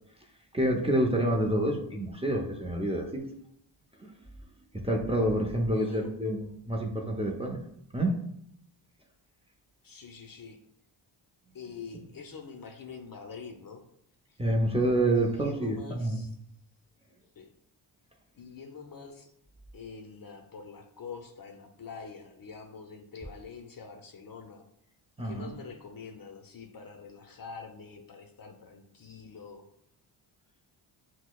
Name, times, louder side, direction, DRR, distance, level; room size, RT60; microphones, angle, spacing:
voice 1, 0.1-3.3 3.9-7.6 7.9-8.2 14.4-16.3 25.2-25.5, right 1 dB, 10° right, 0 dB, 0.7 m, -28 dB
voice 2, 5.8-6.1 9.8-10.6 11.5-13.8 14.3-14.4 15.2-16.3 17.4-17.5 18.3-19.3 19.7-24.6 25.2-29.7, left 5 dB, 45° left, 4 dB, 0.6 m, -45 dB
5.9 x 2.1 x 2.3 m, 0.73 s
cardioid pair, 65°, 49 cm